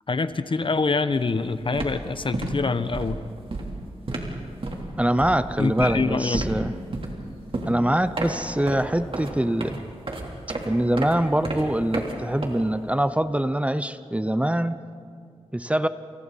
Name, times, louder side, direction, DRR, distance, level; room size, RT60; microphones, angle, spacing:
voice 1, 0.1-3.2 5.6-6.5, left 4 dB, 45° left, 12 dB, 1.0 m, -25 dB
sound 1, 1.1-1.3 1.6-13.0, right 2 dB, 50° right, 3.5 m, -32 dB
voice 2, 5.0-6.7 7.7-9.8 10.6-14.8 15.5-15.9, right 1 dB, 10° right, 12 dB, 0.8 m, -24 dB
29.0 x 29.0 x 4.2 m, 2.3 s
wide cardioid pair, 75°, 12 cm